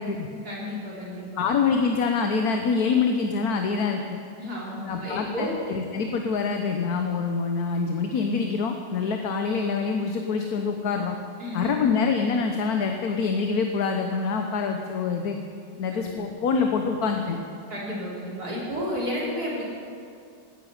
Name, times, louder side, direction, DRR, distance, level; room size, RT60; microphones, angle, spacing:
voice 1, 0.3-1.4 4.4-5.5 11.4-11.9 15.9-16.1 17.7-19.6, left 1 dB, 55° right, -6 dB, 4.7 m, -32 dB
voice 2, 1.4-4.2 4.8-11.2 11.5-15.4 15.8-17.4, left 5 dB, 60° left, 4 dB, 1.4 m, -25 dB
15.0 x 10.0 x 9.3 m, 2.3 s
omnidirectional pair, 1.9 m